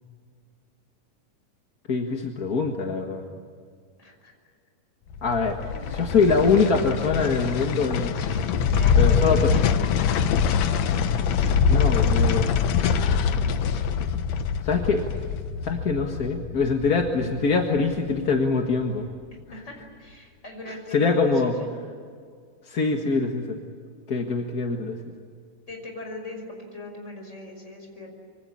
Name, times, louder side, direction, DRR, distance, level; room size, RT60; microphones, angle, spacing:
voice 1, 1.9-3.2 5.2-5.6 5.9-8.2 9.0-9.5 11.7-12.5 14.6-15.1 15.6-19.1 20.7-21.5 22.7-23.6 24.1-25.0, left 4 dB, 40° left, 3 dB, 1.5 m, -23 dB
voice 2, 4.0-4.3 5.6-6.2 8.1-8.5 8.8-9.8 19.3-21.7 24.1-24.2 25.7-28.1, left 2 dB, 20° left, 2 dB, 6.0 m, -41 dB
sound 1, 5.1-18.3 18.6-18.7, left 6 dB, 65° left, 2.2 m, -24 dB
26.0 x 24.5 x 8.6 m, 2.1 s
omnidirectional pair, 3.6 m